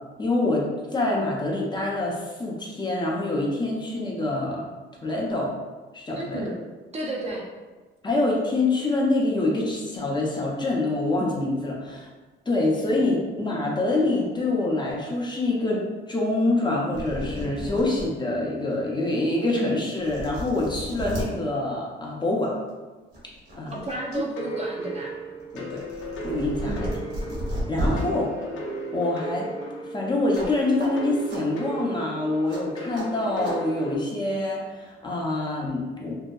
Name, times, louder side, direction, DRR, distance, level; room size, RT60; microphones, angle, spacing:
voice 1, 0.2-4.7 5.0-5.5 5.9-6.5 8.0-12.1 12.5-15.8 16.1-22.5 23.6-23.7 24.1-24.2 25.5-25.8 26.2-26.9 27.3-28.3 28.9-29.5 29.9-36.2, left 2 dB, 20° left, -2 dB, 0.5 m, -26 dB
voice 2, 6.1-6.6 6.9-7.5 23.7-25.1 26.6-26.9, right 2 dB, 35° right, -2 dB, 0.5 m, -32 dB
sound 1, 16.7-16.8 16.9-18.1 18.6-18.7 19.5-19.6 20.0-21.3 22.5-22.7 23.1-24.2 24.5-28.0 30.3-30.5 30.8-30.9 31.3-31.4 32.5-32.6 32.9-33.1 33.4-33.6, equal, 60° right, 1.0 m, -32 dB
sound 2, 24.4-34.0, right 1 dB, 80° left, 0.5 m, -35 dB
2.7 x 2.1 x 2.2 m, 1.3 s
cardioid pair, 90°, 20 cm